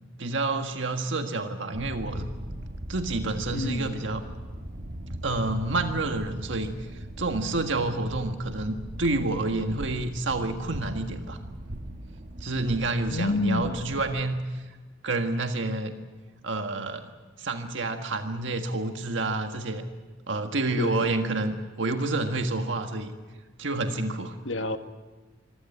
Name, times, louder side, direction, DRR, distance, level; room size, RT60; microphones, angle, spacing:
voice 1, 0.2-2.3 2.9-4.2 5.2-11.4 12.4-14.6 15.0-16.0 16.4-17.1 17.4-19.8 20.3-23.1 23.6-24.3, right 2 dB, 80° right, 6 dB, 1.7 m, -29 dB
sound 1, 1.7-14.2, right 1 dB, 45° right, 1.5 m, -39 dB
voice 2, 3.5-4.0 13.1-13.8 20.8-21.1 24.4-24.8, left 2 dB, 85° left, 8 dB, 1.7 m, -28 dB
25.0 x 16.0 x 9.6 m, 1.3 s
head